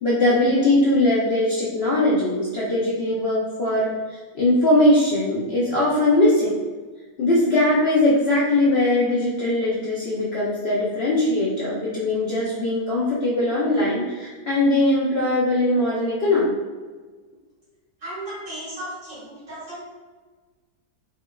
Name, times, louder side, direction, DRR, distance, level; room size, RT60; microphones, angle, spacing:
voice 1, 0.0-4.0 4.3-6.5 7.2-16.5, left 1 dB, 80° left, -7 dB, 0.5 m, -20 dB
voice 2, 18.0-19.8, right 1 dB, 50° right, -10 dB, 2.1 m, -35 dB
4.5 x 2.2 x 2.3 m, 1.4 s
omnidirectional pair, 1.8 m